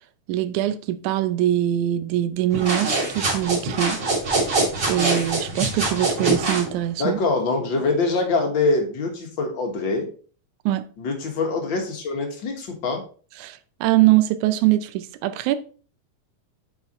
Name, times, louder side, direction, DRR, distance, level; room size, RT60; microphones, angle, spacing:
voice 1, 0.3-4.0 4.9-7.2 10.7-10.9 13.4-15.6, right 13 dB, 85° right, 2.1 m, -22 dB
sound 1, 2.5-6.7, right 2 dB, 35° right, 2.9 m, -24 dB
voice 2, 7.0-10.1 11.0-13.0, left 3 dB, 45° left, 1.9 m, -24 dB
8.0 x 5.0 x 4.3 m
omnidirectional pair, 3.5 m